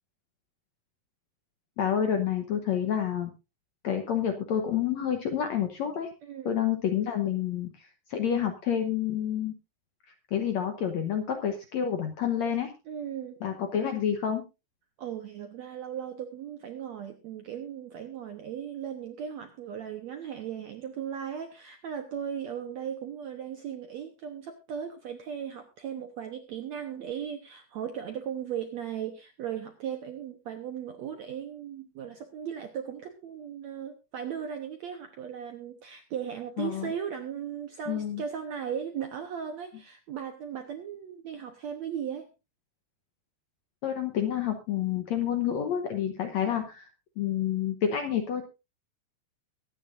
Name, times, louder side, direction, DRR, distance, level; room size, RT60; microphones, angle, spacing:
voice 1, 1.8-3.3 3.8-6.1 6.4-9.5 10.3-12.7 13.4-14.4 36.6-36.9 37.9-38.2 43.8-46.9 47.2-48.5, left 9 dB, 70° left, 5 dB, 1.7 m, -29 dB
voice 2, 6.2-6.6 12.9-13.4 15.0-42.3, right 8 dB, 75° right, 6 dB, 1.6 m, -37 dB
22.5 x 9.3 x 2.6 m, 0.27 s
omnidirectional pair, 4.4 m